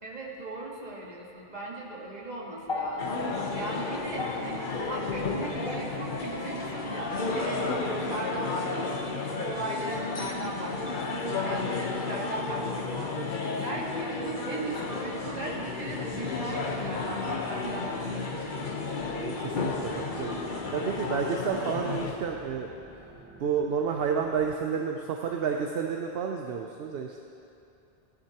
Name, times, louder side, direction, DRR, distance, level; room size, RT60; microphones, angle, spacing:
voice 1, 0.0-3.2 3.5-13.2 13.6-18.5, right 2 dB, 40° right, -4 dB, 1.7 m, -38 dB
sound 1, 2.6-11.0 12.0-12.1, left 3 dB, 30° left, 0.8 m, -41 dB
sound 2, 3.0-22.1, left 3 dB, 50° left, 1.0 m, -32 dB
sound 3, 15.3-24.6, right 1 dB, 10° right, 1.1 m, -51 dB
voice 2, 19.1-20.3 20.7-22.7 23.4-27.2, right 6 dB, 70° right, 2 dB, 0.8 m, -30 dB
15.5 x 10.5 x 2.9 m, 2.6 s
omnidirectional pair, 1.1 m